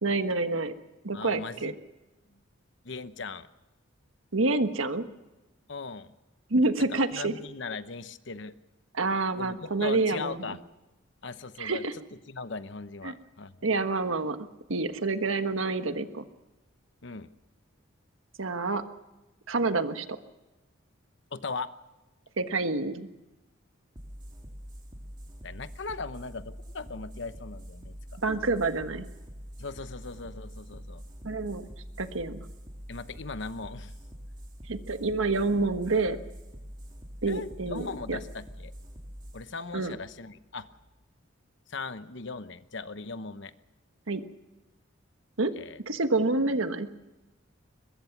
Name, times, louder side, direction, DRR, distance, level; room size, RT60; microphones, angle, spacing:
voice 1, 0.0-0.7 1.0-1.7 4.3-5.0 6.5-7.3 8.9-10.6 11.6-11.9 13.0-13.1 13.6-14.4 14.7-16.2 18.4-18.8 19.5-20.2 22.4-23.1 28.2-29.0 31.2-31.6 32.0-32.4 34.7-36.2 37.2-38.2 39.7-39.9 44.1-44.2 45.4-45.5 45.9-46.9, right 3 dB, 85° right, 9 dB, 1.4 m, -28 dB
voice 2, 1.1-1.7 2.8-3.5 5.7-6.1 7.1-8.5 9.3-10.6 11.2-11.8 12.3-13.6 17.0-17.3 21.3-21.7 25.4-28.0 29.6-31.0 32.9-33.9 37.3-38.7 39.3-40.7 41.7-43.5 45.6-45.8, left 4 dB, 60° left, 12 dB, 0.9 m, -38 dB
sound 1, 23.9-41.0, equal, 20° right, 2.7 m, -45 dB
22.5 x 21.5 x 6.0 m, 1.1 s
head